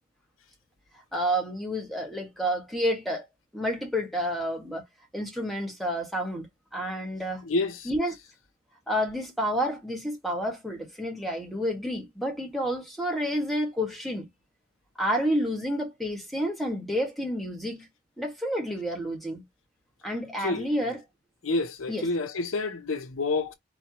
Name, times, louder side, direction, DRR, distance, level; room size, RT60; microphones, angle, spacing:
voice 1, 1.1-3.2 3.5-4.8 5.1-6.5 6.7-7.4 7.8-8.1 8.9-14.3 14.9-17.9 18.2-19.4 20.0-21.0 21.9-22.1, equal, ahead, 1.7 m, -29 dB
voice 2, 7.4-7.9 20.4-20.7 21.4-23.5, left 3 dB, 90° left, 0.8 m, -28 dB
4.5 x 3.1 x 3.0 m
head